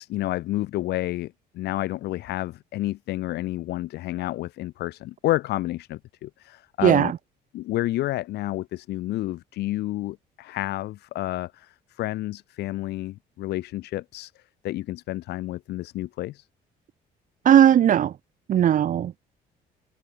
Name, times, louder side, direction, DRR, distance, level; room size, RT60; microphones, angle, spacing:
voice 1, 0.0-7.1 7.5-14.3 14.6-16.5, left 16 dB, 75° left, 2.6 m, -30 dB
voice 2, 6.8-7.2 17.4-18.1 18.5-19.3, right 10 dB, 50° right, 1.4 m, -18 dB
cardioid pair, 110°, 17 cm